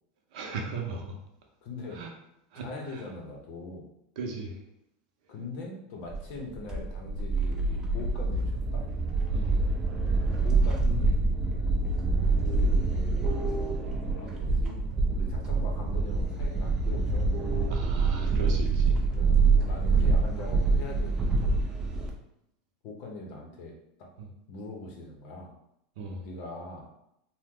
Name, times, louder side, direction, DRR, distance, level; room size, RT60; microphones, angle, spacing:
voice 1, 0.3-1.1 1.9-2.1 2.5-3.0 4.2-4.6 9.3-9.6 17.7-19.1 20.0-20.1 24.2-24.3 26.0-26.2, right 3 dB, 55° right, 1 dB, 0.6 m, -37 dB
voice 2, 1.6-2.0 2.5-3.9 5.3-8.9 10.3-11.2 12.4-12.8 14.1-14.8 15.1-17.3 19.1-21.5 22.8-24.1 24.5-25.5 26.2-26.9, left 3 dB, 45° left, 0 dB, 0.6 m, -41 dB
sound 1, 6.1-22.1, right 3 dB, 15° right, 0.3 m, -26 dB
2.9 x 2.0 x 3.5 m, 0.79 s
supercardioid pair, 170°, 5 cm